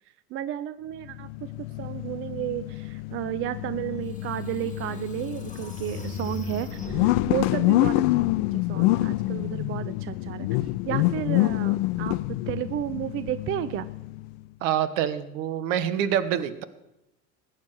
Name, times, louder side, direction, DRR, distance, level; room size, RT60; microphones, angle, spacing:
voice 1, 0.3-1.3 1.6-10.5 10.9-13.9, right 12 dB, 30° right, 14 dB, 0.5 m, -32 dB
sound 1, 1.0-14.4, left 18 dB, 40° left, 0.4 m, -27 dB
sound 2, 3.8-3.9 4.5-7.6, left 2 dB, 15° left, 2.5 m, -38 dB
voice 2, 14.6-16.6, right 9 dB, 55° right, 13 dB, 1.4 m, -26 dB
20.0 x 9.5 x 4.8 m, 0.88 s
figure-of-eight pair, 80°, 46 cm